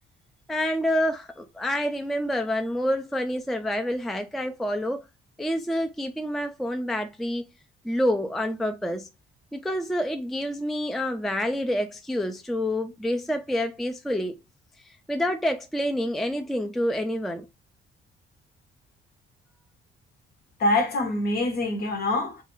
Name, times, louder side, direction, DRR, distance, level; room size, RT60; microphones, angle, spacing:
voice 1, 0.5-5.0 5.4-7.5 7.8-9.1 9.5-14.4 15.1-17.5, equal, ahead, 0.3 m, -27 dB
voice 2, 20.6-22.4, left 2 dB, 50° left, 0.9 m, -25 dB
2.4 x 2.3 x 3.0 m
cardioid pair, 85°, 20 cm